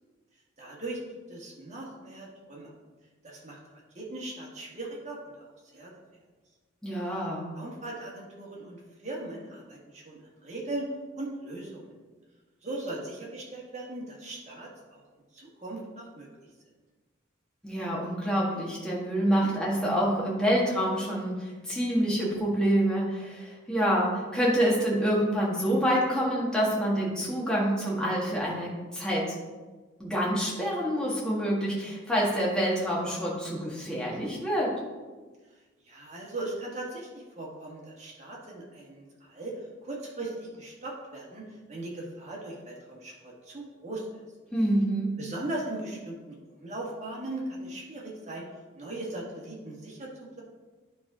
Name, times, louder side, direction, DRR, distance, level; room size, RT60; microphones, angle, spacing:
voice 1, 0.6-1.0 1.3-2.7 3.2-5.9 7.5-10.9 11.2-11.9 12.6-15.0 15.3-16.3 19.4-19.6 35.8-44.1 45.2-48.5 48.8-50.4, right 2 dB, 35° right, -3 dB, 1.6 m, -39 dB
voice 2, 6.8-7.4 17.6-29.3 30.0-34.8 44.5-45.2, equal, 5° left, -6 dB, 1.7 m, -27 dB
10.0 x 3.6 x 4.9 m, 1.3 s
head